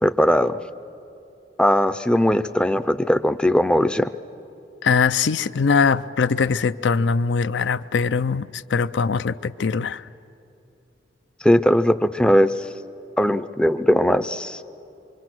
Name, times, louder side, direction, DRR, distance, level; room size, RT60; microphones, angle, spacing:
voice 1, 0.0-0.6 1.6-4.1 11.4-12.5 13.2-14.6, equal, 5° left, 0.4 m, -19 dB
voice 2, 4.8-10.1, left 5 dB, 80° left, 0.5 m, -21 dB
25.0 x 24.5 x 6.1 m
head